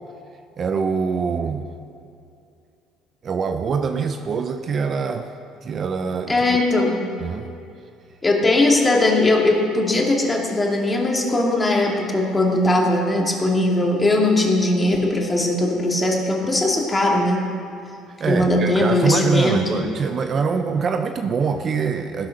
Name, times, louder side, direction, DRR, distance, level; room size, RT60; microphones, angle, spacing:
voice 1, 0.6-1.6 3.2-5.3 5.6-6.5 7.2-7.5 18.2-22.3, right 5 dB, 40° right, 7 dB, 0.7 m, -24 dB
voice 2, 6.3-7.1 8.2-17.5 18.2-19.8, left 2 dB, 20° left, -1 dB, 2.6 m, -19 dB
16.0 x 11.0 x 6.6 m, 2.5 s
cardioid pair, 110°, 0 cm